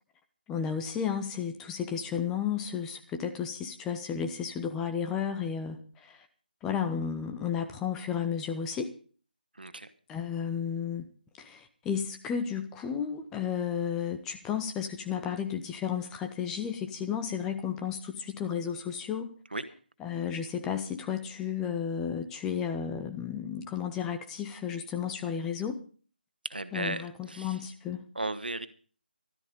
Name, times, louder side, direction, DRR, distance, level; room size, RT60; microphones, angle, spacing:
voice 1, 0.5-6.3 6.6-8.9 10.1-11.1 11.4-19.3 20.0-25.8 26.7-28.0, left 8 dB, 10° left, 6 dB, 0.7 m, -33 dB
voice 2, 9.5-9.9 19.5-19.6 26.4-27.6 28.1-28.7, right 2 dB, 65° right, 11 dB, 1.6 m, -35 dB
14.5 x 13.0 x 5.3 m, 0.41 s
figure-of-eight pair, 155°, 5 cm